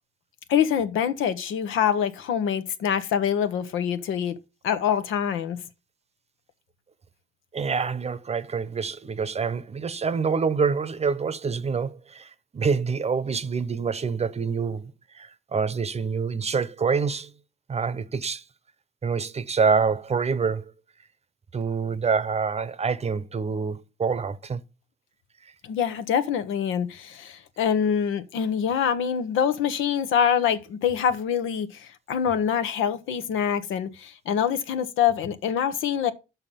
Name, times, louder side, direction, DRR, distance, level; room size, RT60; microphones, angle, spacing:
voice 1, 0.5-4.4 4.6-5.6 25.6-36.1, left 8 dB, 85° left, 1.0 m, -25 dB
voice 2, 7.5-17.3 17.7-18.4 19.0-20.7 21.5-24.6 25.4-25.5, right 5 dB, 30° right, 0.8 m, -26 dB
5.8 x 5.6 x 6.9 m
cardioid pair, 90°, 20 cm